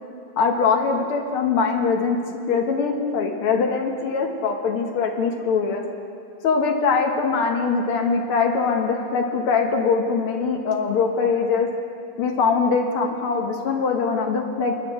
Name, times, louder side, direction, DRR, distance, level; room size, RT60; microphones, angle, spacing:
voice 1, 0.4-2.2 2.5-5.8 6.4-11.7 12.2-14.8, left 5 dB, 85° left, 2 dB, 2.0 m, -22 dB
28.0 x 9.8 x 3.6 m, 2.5 s
omnidirectional pair, 2.3 m